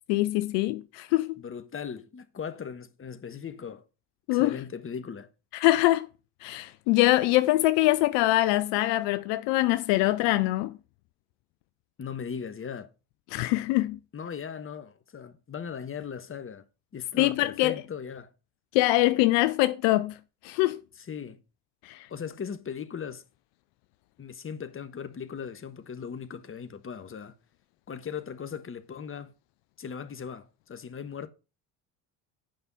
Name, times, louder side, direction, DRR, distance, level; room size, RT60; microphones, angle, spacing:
voice 1, 0.1-1.4 4.3-4.6 5.5-6.1 6.4-10.7 13.3-14.0 17.2-17.8 18.7-20.2 20.4-20.8 21.8-22.1, left 17 dB, 65° left, 0.7 m, -24 dB
voice 2, 1.4-3.8 4.3-5.3 12.0-12.9 14.1-16.6 16.9-18.3 21.1-21.4 22.1-23.2 24.2-27.3 27.9-29.3 29.8-31.3, left 7 dB, 25° left, 1.2 m, -38 dB
8.8 x 5.7 x 5.5 m
hypercardioid pair, 70°, 46 cm